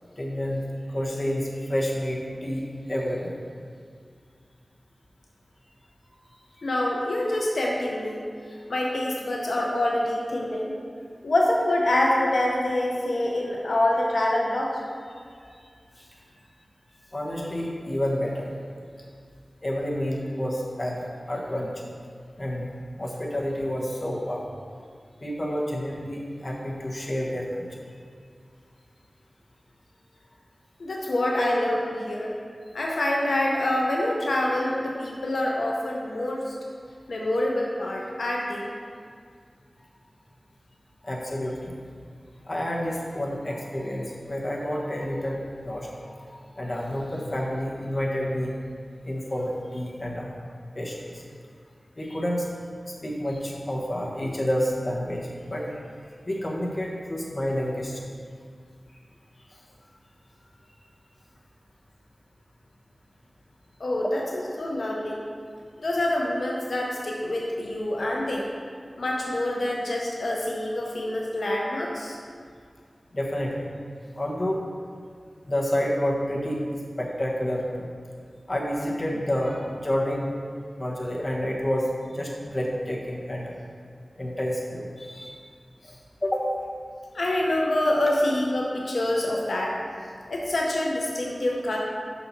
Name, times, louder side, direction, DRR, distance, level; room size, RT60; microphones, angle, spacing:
voice 1, 0.2-3.3 15.5-15.7 15.9-16.1 17.1-18.5 19.6-21.0 21.3-21.9 22.4-22.7 23.0-24.4 25.2-27.8 31.3-31.4 41.0-41.7 42.4-48.5 49.0-50.3 50.7-51.2 52.0-52.5 52.9-55.7 56.2-58.0 59.5-59.6 73.1-73.8 74.2-74.6 75.5-76.6 77.0-77.9 78.5-80.3 80.8-83.5 84.2-85.5 85.8-86.5, equal, 35° left, -3 dB, 1.1 m, -29 dB
voice 2, 6.6-8.3 8.7-10.7 11.2-14.8 30.8-32.3 32.7-36.5 37.1-38.7 63.8-65.2 65.8-68.5 69.0-72.2 87.1-89.8 90.3-91.8, left 1 dB, 85° left, -2 dB, 0.7 m, -26 dB
5.7 x 4.1 x 5.8 m, 2.1 s
wide cardioid pair, 75°, 0 cm